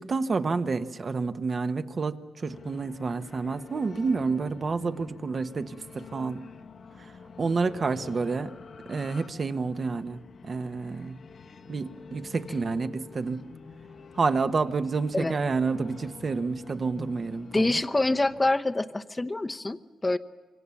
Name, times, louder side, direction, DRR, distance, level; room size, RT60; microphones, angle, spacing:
voice 1, 0.0-6.4 7.4-8.5 8.9-11.2 11.7-13.4 14.1-17.7, right 4 dB, 40° right, 9 dB, 1.1 m, -29 dB
sound 1, 2.5-18.5, left 5 dB, 55° left, 1.1 m, -47 dB
voice 2, 17.5-20.2, left 2 dB, 20° left, 9 dB, 0.9 m, -26 dB
26.5 x 24.5 x 7.1 m, 1.4 s
cardioid pair, 110°, 0 cm